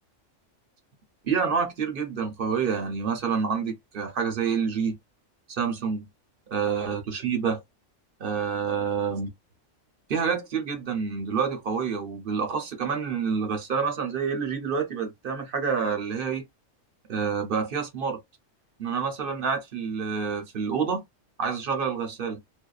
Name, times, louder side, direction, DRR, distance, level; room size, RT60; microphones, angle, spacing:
voice 1, 1.2-5.0 5.5-6.1 6.5-7.6 8.2-9.3 10.1-16.4 17.1-18.2 18.8-21.0 21.4-22.4, right 6 dB, 55° right, 0.7 m, -28 dB
2.6 x 2.0 x 2.2 m
omnidirectional pair, 1.3 m